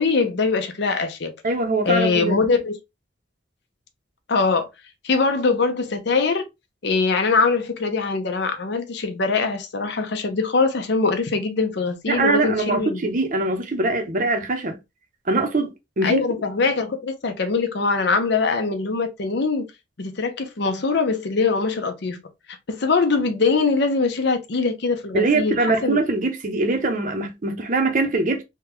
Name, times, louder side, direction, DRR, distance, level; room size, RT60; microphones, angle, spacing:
voice 1, 0.0-1.3 1.8-2.7 4.3-4.7 5.0-6.5 6.8-13.1 16.0-19.6 20.0-22.2 22.5-25.6 25.8-26.0, left 4 dB, 65° left, 0.7 m, -22 dB
voice 2, 1.4-2.4 12.1-14.8 15.3-16.2 25.1-28.4, right 2 dB, 45° right, 0.7 m, -22 dB
3.6 x 2.3 x 2.8 m
head